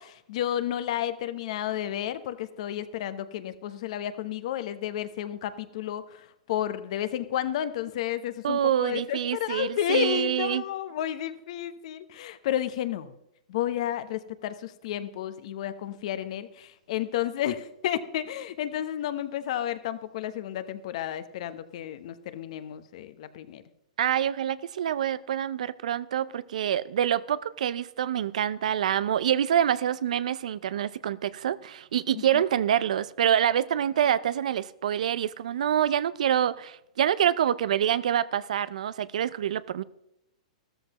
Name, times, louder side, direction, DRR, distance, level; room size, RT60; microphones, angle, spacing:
voice 1, 0.0-13.1 13.5-23.6 32.3-32.4, left 11 dB, 60° left, 0.9 m, -31 dB
voice 2, 8.4-10.6 24.0-39.8, right 10 dB, 75° right, 0.5 m, -26 dB
14.0 x 13.5 x 3.0 m
hypercardioid pair, 140°, 4 cm